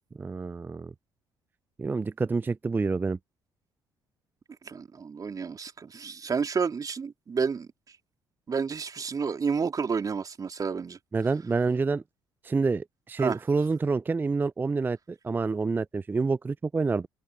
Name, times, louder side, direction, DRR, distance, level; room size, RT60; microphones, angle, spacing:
voice 1, 0.2-0.9 1.8-3.2 11.1-12.0 12.4-15.0 15.2-17.1, right 4 dB, 20° right, 0.4 m, -27 dB
voice 2, 4.7-7.7 8.5-11.0 13.2-13.4, right 5 dB, 35° right, 3.5 m, -30 dB
open air
hypercardioid pair, 50°, 10 cm